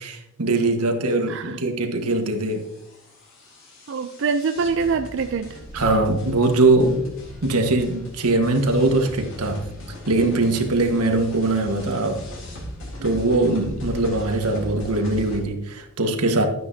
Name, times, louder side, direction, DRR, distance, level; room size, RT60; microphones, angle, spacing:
voice 1, 0.0-2.7 5.7-7.1 7.4-9.7 10.1-12.2 13.0-16.5, right 2 dB, 90° right, 1.5 m, -21 dB
voice 2, 1.3-1.6 3.9-5.6, right 5 dB, 60° right, 0.4 m, -25 dB
sound 1, 2.1-15.4, left 1 dB, 60° left, 3.7 m, -38 dB
12.5 x 9.3 x 2.8 m
head